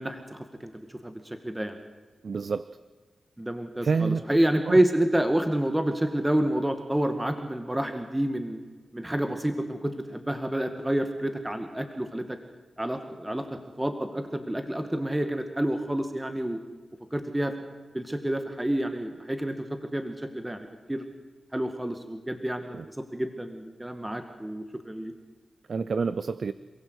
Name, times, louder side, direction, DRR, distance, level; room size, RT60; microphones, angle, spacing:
voice 1, 0.0-1.8 3.4-8.6 8.9-12.4 12.8-16.6 17.1-17.5 17.9-19.7 19.9-21.1 21.5-25.1, right 1 dB, 15° right, 7 dB, 2.0 m, -29 dB
voice 2, 2.2-2.7 3.8-4.2 4.7-4.8 22.7-22.9 25.7-26.5, right 5 dB, 65° right, 15 dB, 0.6 m, -28 dB
28.5 x 16.5 x 8.2 m, 1.4 s
cardioid pair, 55°, 0 cm